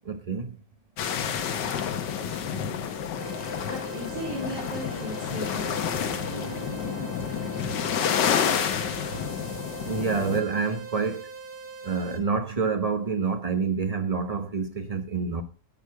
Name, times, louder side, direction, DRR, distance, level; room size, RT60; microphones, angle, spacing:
voice 1, 0.0-0.6 9.8-11.3 11.8-15.4, right 5 dB, 30° right, 0.7 m, -27 dB
sound 1, 1.0-10.4, left 8 dB, 85° left, 1.6 m, -29 dB
voice 2, 1.3-7.2 7.7-9.3, equal, 80° right, 3.5 m, -40 dB
sound 2, 3.2-12.2, right 4 dB, 55° right, 2.7 m, -42 dB
11.0 x 6.7 x 4.7 m
omnidirectional pair, 1.9 m